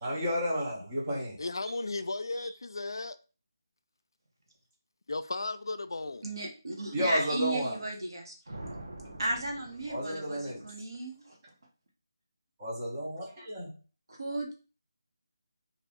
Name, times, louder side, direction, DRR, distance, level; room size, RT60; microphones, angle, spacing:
voice 1, 0.0-1.4 6.9-7.8 9.9-10.7 12.6-13.8, equal, 15° right, 0.6 m, -32 dB
voice 2, 1.4-3.2 5.1-6.2, left 3 dB, 80° left, 0.3 m, -35 dB
voice 3, 6.2-8.3 9.2-11.4 14.1-14.6, right 2 dB, 70° right, 1.1 m, -35 dB
sound 1, 8.5-10.7, right 1 dB, 50° right, 0.7 m, -45 dB
2.8 x 2.4 x 3.5 m
figure-of-eight pair, 180°, 2 cm